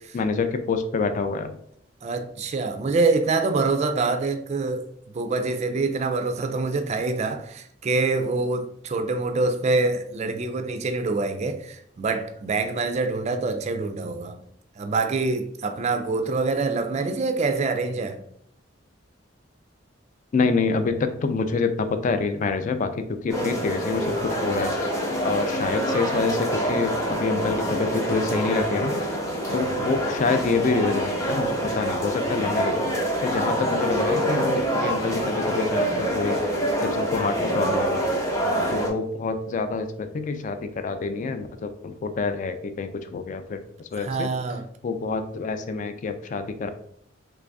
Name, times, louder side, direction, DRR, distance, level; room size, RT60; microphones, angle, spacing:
voice 1, 0.1-1.6 20.3-24.8 25.2-29.0 29.5-32.9 33.2-36.4 36.8-38.1 38.7-44.3 44.8-46.7, left 4 dB, 40° left, 0.3 m, -27 dB
voice 2, 2.0-4.9 5.1-14.4 14.8-18.2 29.5-29.7 38.4-38.9 44.0-44.6, right 3 dB, 35° right, 0.3 m, -25 dB
sound 1, 23.3-38.9, right 1 dB, 15° left, 0.7 m, -26 dB
3.1 x 2.5 x 3.4 m
head